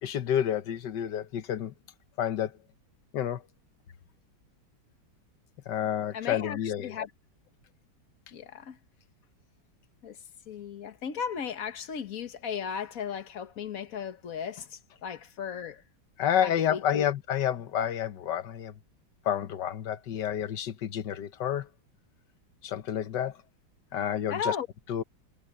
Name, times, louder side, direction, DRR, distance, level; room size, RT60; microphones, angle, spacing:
voice 1, 0.0-1.7 2.2-2.5 3.1-3.4 5.7-6.9 16.2-18.7 19.2-21.7 22.6-23.4 23.9-24.5 24.9-25.0, left 10 dB, 60° left, 1.6 m, -29 dB
voice 2, 6.1-7.1 8.3-8.8 10.0-10.2 10.5-15.8 16.4-17.1 24.3-24.7, left 7 dB, 45° left, 1.6 m, -36 dB
omnidirectional pair, 2.2 m